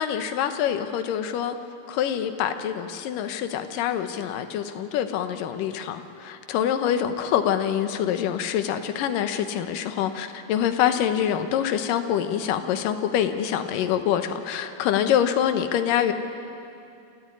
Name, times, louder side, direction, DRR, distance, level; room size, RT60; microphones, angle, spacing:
voice 1, 0.0-1.6 1.9-16.1, left 9 dB, 80° left, 8 dB, 2.7 m, -25 dB
27.5 x 14.0 x 9.9 m, 2.6 s
omnidirectional pair, 3.9 m